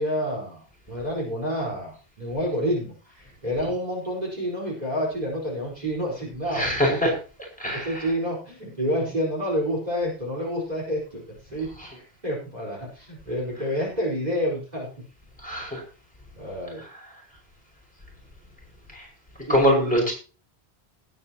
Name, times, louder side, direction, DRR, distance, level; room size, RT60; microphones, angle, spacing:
voice 1, 0.0-7.0 7.7-11.2 11.5-14.9 16.4-16.8 19.5-20.1, equal, 40° right, -4 dB, 4.9 m, -29 dB
voice 2, 6.5-7.1 7.6-8.0 15.4-15.8 18.9-19.0 19.5-20.1, equal, 5° left, -2 dB, 6.1 m, -23 dB
19.5 x 9.2 x 3.0 m, 0.36 s
omnidirectional pair, 1.1 m